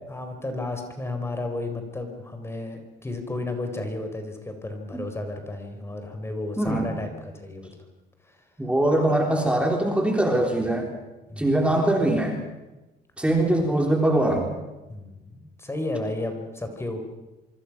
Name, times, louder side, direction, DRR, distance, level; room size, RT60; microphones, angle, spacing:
voice 1, 0.1-7.7 8.2-8.5 11.3-11.5 14.9-17.1, left 2 dB, 15° left, 6 dB, 4.4 m, -33 dB
voice 2, 6.6-6.9 8.6-10.9 11.4-12.4 13.2-14.5, right 1 dB, 5° right, 1 dB, 3.8 m, -22 dB
25.5 x 25.0 x 6.1 m, 1.1 s
cardioid pair, 110°, 17 cm